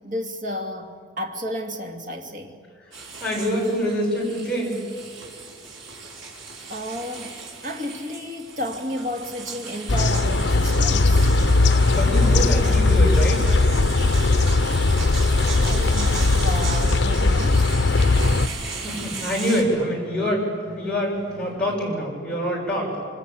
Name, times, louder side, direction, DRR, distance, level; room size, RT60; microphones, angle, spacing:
voice 1, 0.0-2.6 6.7-11.3 15.7-17.8, equal, 40° right, 2 dB, 2.5 m, -32 dB
sound 1, 2.9-19.6, right 4 dB, 75° right, 5.4 m, -36 dB
voice 2, 3.2-4.8 11.9-13.4 18.7-23.0, equal, 5° left, -4 dB, 7.5 m, -25 dB
sound 2, 9.9-18.5, left 3 dB, 65° left, 0.8 m, -19 dB
sound 3, 16.0-21.6, equal, 20° right, 7.8 m, -45 dB
26.5 x 25.5 x 8.6 m, 2.1 s
head